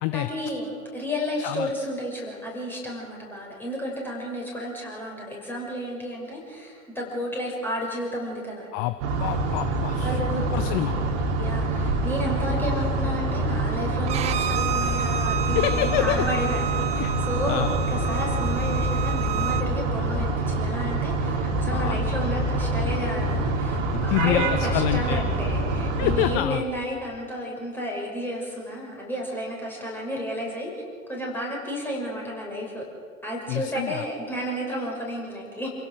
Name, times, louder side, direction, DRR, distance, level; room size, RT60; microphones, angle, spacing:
voice 1, 0.1-8.7 10.0-10.7 11.4-17.6 17.9-30.7 31.1-32.9 33.2-35.7, equal, 5° left, -2 dB, 6.1 m, -32 dB
voice 2, 1.4-1.7 8.7-10.9 15.5-16.3 17.0-17.1 17.5-17.7 21.7-22.0 23.9-25.2 26.0-26.6 33.5-34.1, left 15 dB, 25° left, 13 dB, 0.5 m, -27 dB
sound 1, 9.0-26.4, right 2 dB, 40° right, 3.3 m, -26 dB
Bowed string instrument, 14.1-19.6, right 8 dB, 15° right, 0.7 m, -31 dB
29.0 x 16.5 x 6.5 m, 2.1 s
figure-of-eight pair, 100°, 41 cm